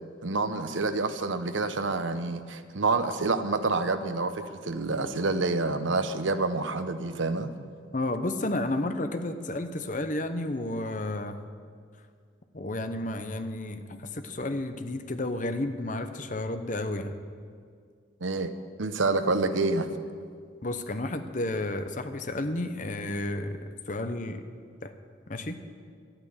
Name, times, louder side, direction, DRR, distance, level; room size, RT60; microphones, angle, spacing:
voice 1, 0.2-7.5 18.2-18.5 18.8-19.9, right 3 dB, 75° right, 10 dB, 0.9 m, -28 dB
voice 2, 7.9-11.4 12.5-17.1 20.6-23.6 23.9-24.4 24.8-24.9 25.3-25.6, left 1 dB, 40° left, 8 dB, 0.9 m, -31 dB
12.5 x 9.0 x 9.6 m, 2.1 s
head